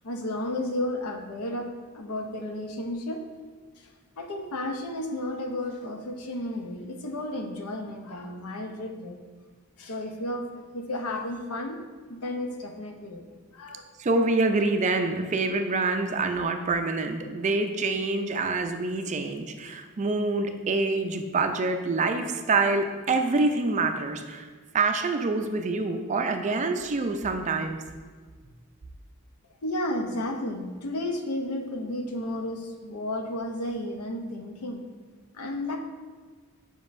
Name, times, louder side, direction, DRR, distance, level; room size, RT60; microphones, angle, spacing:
voice 1, 0.0-1.7 1.9-3.2 4.2-9.2 9.8-11.8 12.1-13.2 13.5-13.8 29.6-34.8 35.3-35.8, left 1 dB, 80° left, 4 dB, 0.7 m, -32 dB
voice 2, 14.0-24.5 24.7-27.8, right 3 dB, 30° right, 6 dB, 0.4 m, -26 dB
7.2 x 5.2 x 2.5 m, 1.5 s
head